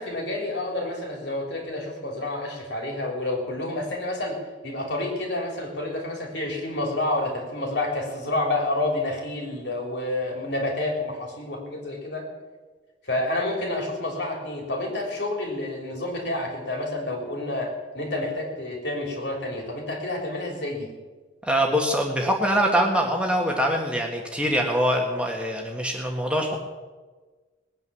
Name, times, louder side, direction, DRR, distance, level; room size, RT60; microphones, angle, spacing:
voice 1, 0.0-4.4 4.6-12.3 13.0-20.9, left 2 dB, 60° left, 1 dB, 3.8 m, -29 dB
voice 2, 21.4-26.6, equal, 5° right, 0 dB, 1.6 m, -23 dB
20.0 x 9.4 x 7.1 m, 1.3 s
head